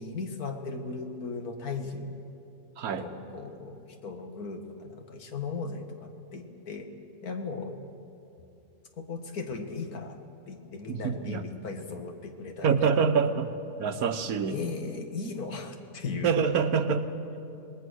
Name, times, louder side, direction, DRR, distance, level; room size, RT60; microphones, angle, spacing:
voice 1, 0.0-2.2 2.9-6.9 7.2-7.8 9.0-10.2 10.5-13.1 14.5-16.4, left 4 dB, 85° left, 5 dB, 2.1 m, -37 dB
voice 2, 10.9-11.4 12.6-13.5 13.8-14.6 16.2-17.1, right 6 dB, 85° right, 9 dB, 1.5 m, -26 dB
26.5 x 20.0 x 6.4 m, 2.7 s
omnidirectional pair, 1.5 m